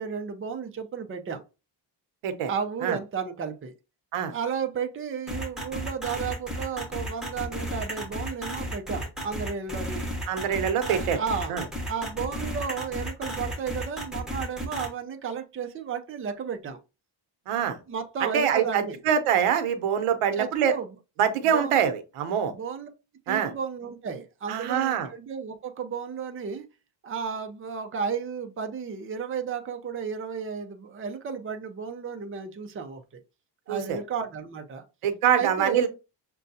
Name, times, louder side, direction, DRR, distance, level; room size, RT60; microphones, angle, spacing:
voice 1, 0.0-1.4 2.5-3.7 4.3-10.0 10.8-11.6 11.9-16.8 17.9-19.0 20.4-20.9 21.4-21.8 22.5-22.9 23.3-26.6 27.0-33.0 33.7-34.8 35.3-35.8, right 6 dB, 25° right, 0.6 m, -33 dB
sound 1, 5.3-14.9, equal, ahead, 1.3 m, -33 dB
voice 2, 10.3-11.2 11.5-11.6 17.5-17.8 18.2-20.8 21.2-22.5 23.3-23.5 24.5-25.1 33.7-34.0 35.0-35.9, right 8 dB, 85° right, 0.8 m, -24 dB
6.4 x 2.3 x 2.6 m
cardioid pair, 105°, 50 cm